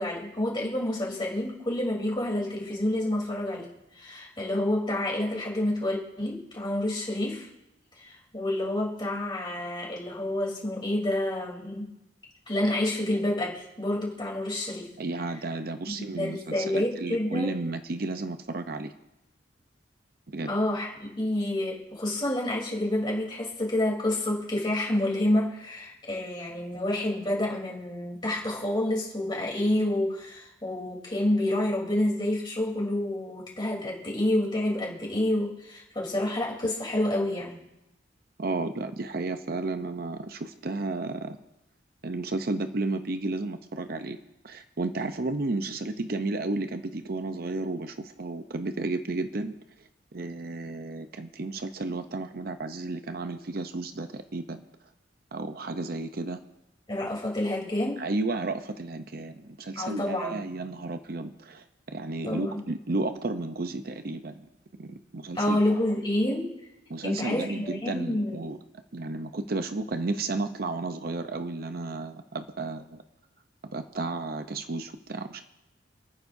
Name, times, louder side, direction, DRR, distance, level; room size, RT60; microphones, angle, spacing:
voice 1, 0.0-7.5 8.0-11.9 12.5-14.9 15.9-17.5 20.5-37.7 56.9-58.0 59.8-60.4 62.2-62.6 65.3-66.5 67.0-68.4, left 1 dB, 25° left, -3 dB, 3.4 m, -28 dB
voice 2, 15.0-18.9 20.3-20.5 38.4-41.4 42.0-44.2 44.4-49.6 50.1-54.6 55.3-56.4 58.0-64.5 64.8-65.6 66.9-68.6 68.9-73.0 73.7-75.4, right 2 dB, 55° right, 8 dB, 0.7 m, -32 dB
29.0 x 9.7 x 2.7 m, 0.92 s
head